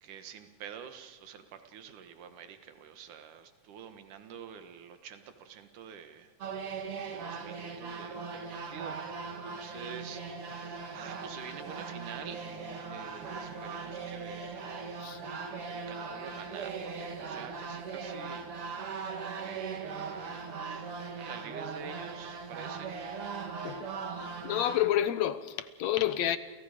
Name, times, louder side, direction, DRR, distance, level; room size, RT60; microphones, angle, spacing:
voice 1, 0.0-6.3 7.1-12.6 12.9-14.7 15.3-18.5 19.3-23.0, right 7 dB, 85° right, 3.0 m, -48 dB
sound 1, 6.4-24.9, right 5 dB, 50° right, 2.9 m, -39 dB
voice 2, 24.4-26.4, left 11 dB, 70° left, 2.1 m, -29 dB
30.0 x 28.0 x 5.1 m
omnidirectional pair, 3.5 m